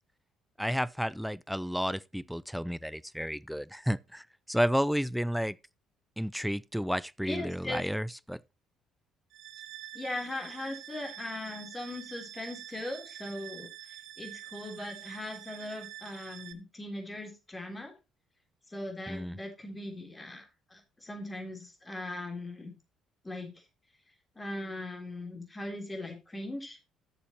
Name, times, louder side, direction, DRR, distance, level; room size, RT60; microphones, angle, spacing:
voice 1, 0.6-5.6 6.2-8.4 19.1-19.4, equal, ahead, 0.4 m, -31 dB
voice 2, 7.2-7.8 9.9-17.9 18.7-20.4 20.7-22.7 23.2-23.6 24.3-26.8, left 1 dB, 20° left, 3.4 m, -39 dB
sound 1, 9.3-16.5, right 13 dB, 65° right, 0.9 m, -46 dB
12.5 x 7.0 x 2.9 m
hypercardioid pair, 50°, 0 cm